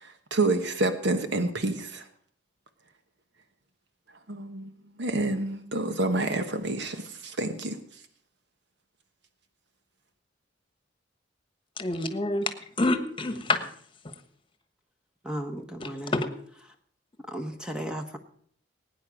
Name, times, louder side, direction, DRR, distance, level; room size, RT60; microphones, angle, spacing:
voice 1, 0.0-2.0 4.3-4.7 5.0-7.8, right 2 dB, 65° right, 8 dB, 1.2 m, -28 dB
voice 2, 11.8-13.6 14.0-14.1 15.8-16.3, left 2 dB, 30° left, 9 dB, 1.3 m, -28 dB
voice 3, 13.3-13.7 15.2-16.2 16.6-16.7 17.3-18.2, right 1 dB, 5° right, 5 dB, 1.0 m, -36 dB
18.0 x 9.6 x 5.1 m, 0.62 s
head